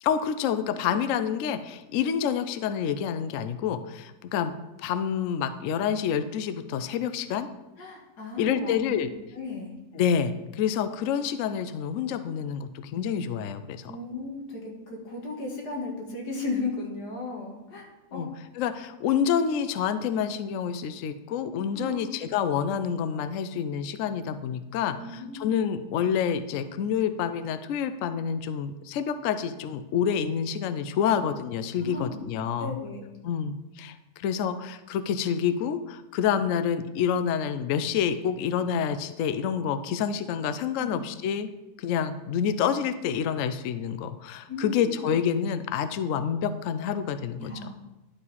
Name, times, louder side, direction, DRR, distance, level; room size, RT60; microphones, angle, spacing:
voice 1, 0.0-7.5 8.4-9.1 9.9-13.9 18.1-18.3 18.5-32.8 33.2-41.5 41.8-47.7, left 8 dB, 70° left, 11 dB, 0.8 m, -28 dB
voice 2, 7.8-9.8 13.9-18.3 21.7-22.1 25.0-25.6 31.8-32.3 32.6-33.0 40.8-41.0 44.5-45.1 47.4-47.7, left 3 dB, 90° left, 0 dB, 2.2 m, -36 dB
11.0 x 4.9 x 4.1 m, 0.99 s
omnidirectional pair, 1.7 m